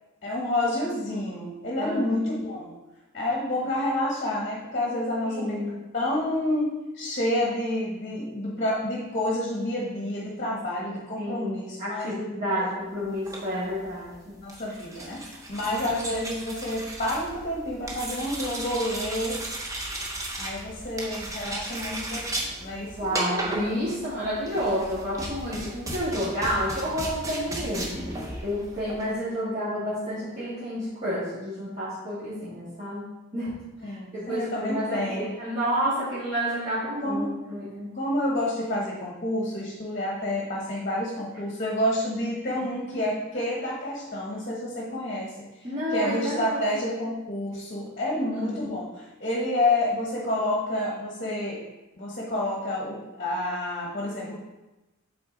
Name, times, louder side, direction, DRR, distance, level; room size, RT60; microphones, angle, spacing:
voice 1, 0.2-2.7 3.1-12.1 12.5-12.7 14.4-19.4 20.4-23.0 33.8-35.3 37.0-37.3 37.9-45.3 45.9-51.6 52.0-54.4, left 1 dB, 35° left, -3 dB, 1.1 m, -29 dB
voice 2, 1.8-2.2 5.3-5.8 11.2-14.4 15.6-15.7 23.0-28.2 28.4-33.1 33.3-33.5 33.8-37.9 45.6-46.8 48.1-48.6, equal, 30° right, -13 dB, 1.9 m, -30 dB
sound 1, 13.1-29.1, right 1 dB, 15° right, 0.7 m, -35 dB
7.7 x 3.9 x 3.9 m, 1.1 s
head